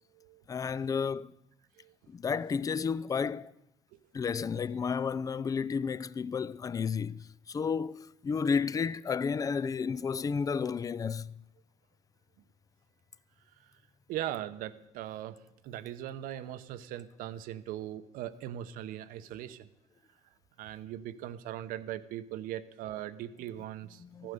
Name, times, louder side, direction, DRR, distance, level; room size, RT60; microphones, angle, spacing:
voice 1, 0.5-1.3 2.1-3.5 4.1-11.3 24.0-24.3, left 6 dB, 25° left, 0.4 m, -32 dB
voice 2, 14.1-19.7 20.6-24.3, right 12 dB, 75° right, 0.9 m, -40 dB
15.0 x 11.5 x 6.8 m
cardioid pair, 110°, 15 cm